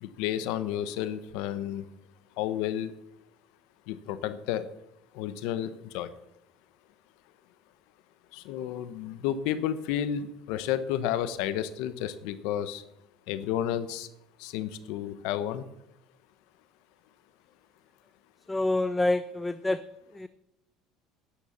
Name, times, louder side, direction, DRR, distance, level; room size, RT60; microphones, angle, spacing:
voice 1, 0.0-1.9 2.4-2.9 3.9-4.7 5.1-6.1 8.3-12.8 13.3-14.1 14.4-15.6, left 10 dB, 75° left, 13 dB, 0.9 m, -31 dB
voice 2, 18.5-19.8 20.1-20.3, left 2 dB, 10° left, 14 dB, 0.4 m, -27 dB
10.0 x 9.3 x 7.1 m, 0.88 s
cardioid pair, 130°, 0 cm